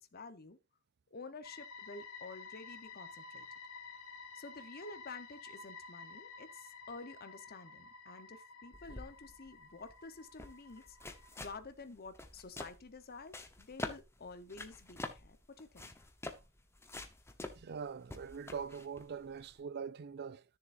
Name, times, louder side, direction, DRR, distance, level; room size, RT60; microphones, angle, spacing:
voice 1, 0.1-0.6 1.1-3.5 4.3-11.0 11.4-15.9, left 3 dB, 45° left, 0.9 m, -50 dB
sound 1, 1.4-11.6, left 4 dB, 90° left, 1.3 m, -52 dB
sound 2, 8.7-19.6, left 2 dB, 10° left, 0.9 m, -48 dB
voice 2, 17.6-20.4, right 6 dB, 50° right, 0.4 m, -43 dB
13.0 x 6.8 x 2.6 m
head